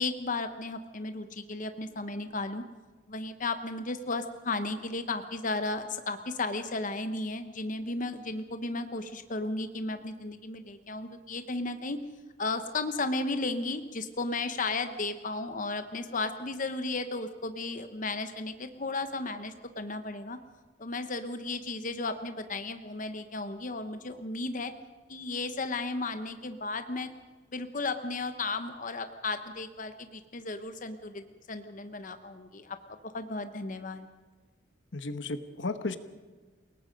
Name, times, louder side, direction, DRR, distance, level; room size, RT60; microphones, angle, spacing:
voice 1, 0.0-2.6 3.1-12.0 12.4-20.4 20.8-24.7 25.1-27.1 27.5-32.8 33.0-34.1, left 3 dB, 45° left, 8 dB, 1.0 m, -34 dB
voice 2, 34.9-36.0, left 3 dB, 70° left, 10 dB, 1.1 m, -34 dB
29.0 x 18.5 x 5.2 m, 1.3 s
head